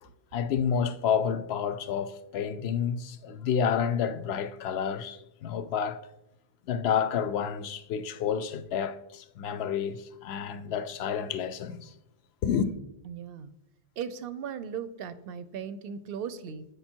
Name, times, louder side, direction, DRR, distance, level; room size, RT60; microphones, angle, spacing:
voice 1, 0.0-6.0 6.7-11.9 12.4-12.7, left 7 dB, 80° left, 0.8 m, -30 dB
voice 2, 13.0-13.5 14.0-16.6, right 7 dB, 70° right, 0.8 m, -37 dB
8.2 x 5.2 x 4.4 m
omnidirectional pair, 1.1 m